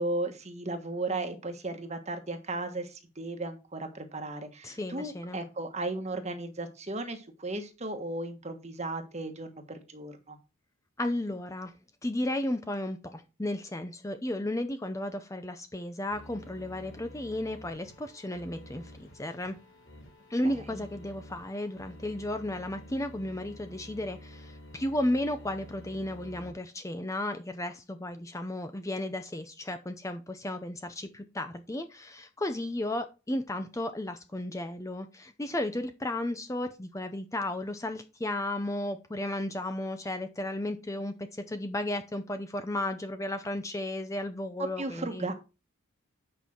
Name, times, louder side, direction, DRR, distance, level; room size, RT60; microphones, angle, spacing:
voice 1, 0.0-10.4 44.8-45.3, right 2 dB, 30° right, 7 dB, 1.4 m, -35 dB
voice 2, 4.6-5.4 11.0-11.7 12.0-19.6 20.3-45.3, left 1 dB, 15° left, 8 dB, 0.6 m, -34 dB
sound 1, 16.1-26.5, equal, 60° left, 4.6 m, -50 dB
8.6 x 5.5 x 4.4 m, 0.29 s
head